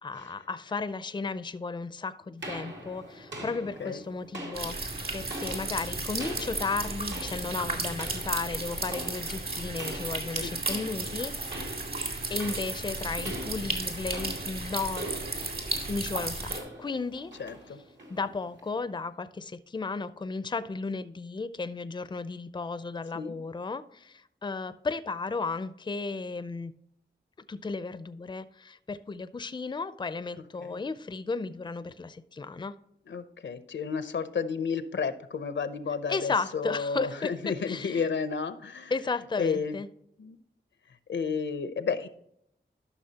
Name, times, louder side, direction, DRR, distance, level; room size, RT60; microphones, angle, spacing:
voice 1, 0.0-4.8 5.1-11.9 12.3-15.1 15.9-16.5 16.8-17.3 18.1-26.7 27.5-32.7 36.1-37.3 37.7-38.0 38.9-39.9, left 4 dB, 25° left, 13 dB, 0.4 m, -34 dB
sound 1, 2.4-18.8, right 1 dB, 80° right, 2.3 m, -43 dB
sound 2, 4.5-16.6, right 2 dB, 55° right, 2.1 m, -34 dB
voice 2, 17.4-17.8 23.1-23.4 30.6-30.8 33.1-38.9 39.4-39.8 40.2-40.4 41.1-42.1, left 5 dB, 80° left, 12 dB, 0.7 m, -32 dB
12.0 x 6.0 x 2.8 m, 0.74 s
wide cardioid pair, 75°, 18 cm